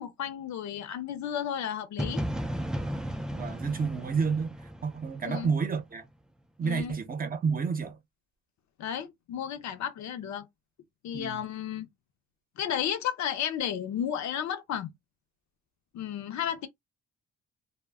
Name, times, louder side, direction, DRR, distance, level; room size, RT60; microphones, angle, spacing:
voice 1, 0.0-2.2 5.2-5.5 6.6-7.0 8.8-10.5 11.0-11.9 12.6-14.9 15.9-16.7, left 9 dB, 70° left, 0.6 m, -33 dB
sound 1, 2.0-5.8, equal, ahead, 0.4 m, -34 dB
voice 2, 3.3-4.5 4.8-6.0 6.6-7.9 11.1-11.4, right 5 dB, 30° right, 0.7 m, -30 dB
2.1 x 2.1 x 3.4 m
cardioid pair, 90°, 30 cm